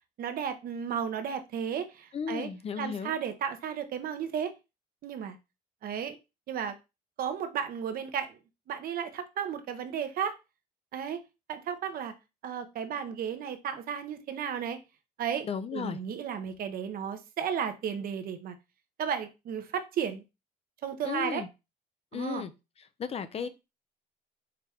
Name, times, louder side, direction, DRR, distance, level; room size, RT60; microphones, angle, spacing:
voice 1, 0.2-2.5 2.8-4.5 5.0-5.4 5.8-6.2 6.5-6.8 7.2-8.4 8.7-10.4 10.9-11.2 11.5-12.1 12.4-14.8 15.2-18.6 19.0-20.2 20.8-21.4 22.1-22.4 23.4-23.5, right 8 dB, 60° right, 0.9 m, -34 dB
voice 2, 2.1-3.1 15.4-16.0 21.0-21.5 22.1-22.5 23.0-23.5, left 6 dB, 35° left, 0.5 m, -34 dB
4.8 x 3.1 x 3.5 m
cardioid pair, 110°, 17 cm